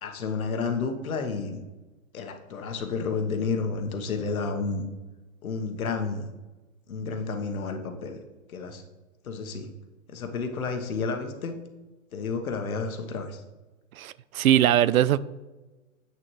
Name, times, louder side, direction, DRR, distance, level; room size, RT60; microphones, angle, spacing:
voice 1, 0.0-1.6 2.1-4.8 5.4-6.3 6.9-8.2 8.5-8.8 9.2-9.7 10.1-11.6 12.1-13.4, left 4 dB, 80° left, 6 dB, 1.3 m, -31 dB
voice 2, 14.0-15.2, right 11 dB, 80° right, 18 dB, 0.5 m, -21 dB
8.2 x 6.2 x 3.2 m, 1.1 s
hypercardioid pair, 135°, 42 cm